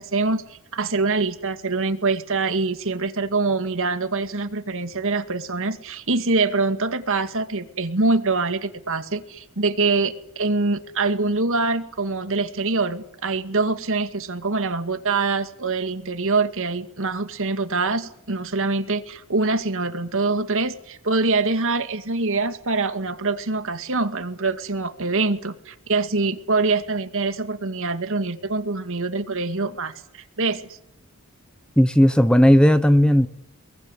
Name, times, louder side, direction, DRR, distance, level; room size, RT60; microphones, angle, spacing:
voice 1, 0.0-29.9 30.4-30.8, right 3 dB, 60° right, 8 dB, 2.2 m, -24 dB
voice 2, 31.8-33.3, equal, 5° left, 11 dB, 1.0 m, -15 dB
24.5 x 22.5 x 9.9 m, 0.74 s
head